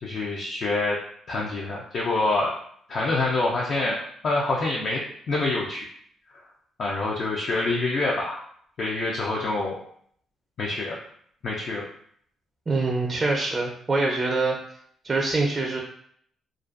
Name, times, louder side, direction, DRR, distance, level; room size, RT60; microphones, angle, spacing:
voice 1, 0.0-1.0 1.3-2.5 2.9-5.0 5.3-5.9 6.8-8.4 8.8-9.8 10.6-11.0 11.4-11.8, left 2 dB, 55° left, -3 dB, 0.4 m, -26 dB
voice 2, 12.7-14.6 15.0-15.8, right 3 dB, 30° right, 0 dB, 0.4 m, -24 dB
2.4 x 2.2 x 2.4 m, 0.64 s
cardioid pair, 90°, 0 cm